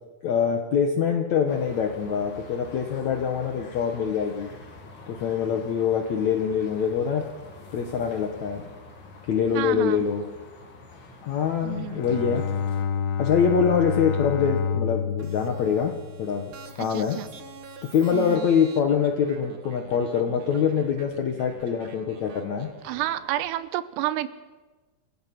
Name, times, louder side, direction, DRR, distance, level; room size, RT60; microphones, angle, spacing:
voice 1, 0.2-4.5 5.1-7.2 7.7-8.6 9.3-10.2 11.2-12.4 13.2-15.9 16.2-16.5 16.8-17.2 17.8-22.7, left 7 dB, 70° left, 4 dB, 1.7 m, -24 dB
sound 1, 1.5-12.8, left 3 dB, 35° left, 2.2 m, -46 dB
voice 2, 9.5-10.0 11.6-12.0 16.8-17.3 18.1-18.5 22.8-24.3, right 14 dB, 80° right, 14 dB, 2.9 m, -30 dB
Bowed string instrument, 11.6-16.9, left 6 dB, 85° left, 3.6 m, -29 dB
sound 2, 15.2-23.5, right 5 dB, 60° right, 1.3 m, -47 dB
28.0 x 16.5 x 5.9 m, 1.3 s
omnidirectional pair, 4.9 m